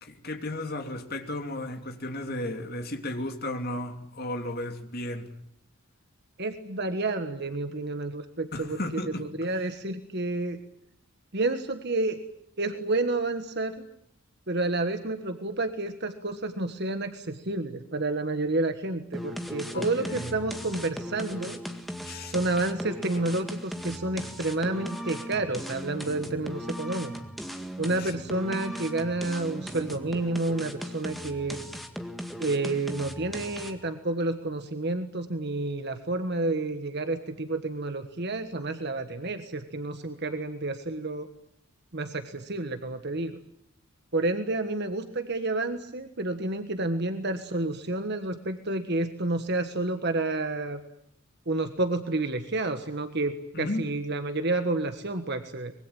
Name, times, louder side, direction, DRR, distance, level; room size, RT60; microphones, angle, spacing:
voice 1, 0.0-5.3 8.5-9.3 19.7-20.3 22.0-22.3 28.0-28.1 53.5-53.9, left 1 dB, 45° left, 2.9 m, -34 dB
voice 2, 6.4-8.8 9.1-10.6 11.3-12.2 12.6-13.7 14.5-21.6 22.3-27.2 27.8-31.6 32.4-41.3 41.9-43.4 44.1-50.8 51.5-55.7, right 2 dB, 50° right, 1.5 m, -30 dB
sound 1, 19.1-33.9, equal, ahead, 1.9 m, -38 dB
24.5 x 22.0 x 9.0 m
head